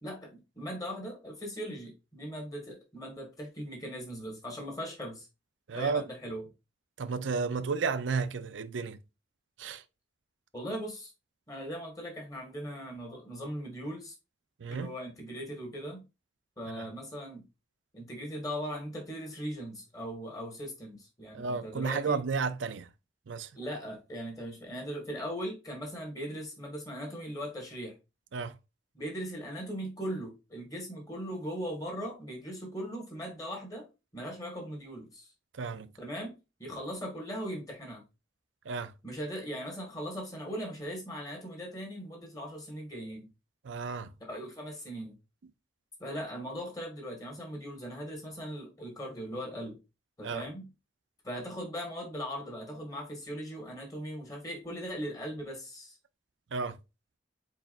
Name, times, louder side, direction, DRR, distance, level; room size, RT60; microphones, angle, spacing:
voice 1, 0.0-5.3 5.7-6.5 10.5-11.1 11.5-14.1 14.7-16.0 16.6-17.4 17.9-22.2 23.5-27.9 28.9-33.9 34.1-35.3 36.0-38.0 39.0-43.3 44.3-45.2 46.0-49.8 50.2-50.7 51.2-56.0, equal, 20° left, 1.6 m, -39 dB
voice 2, 5.7-6.0 7.0-9.0 9.6-9.8 14.6-14.9 16.8-16.9 21.3-22.9 23.3-23.5 28.3-28.5 35.6-35.9 38.7-38.9 43.7-44.1 50.2-50.4 56.5-56.8, right 5 dB, 90° right, 0.5 m, -32 dB
4.6 x 4.2 x 2.5 m
head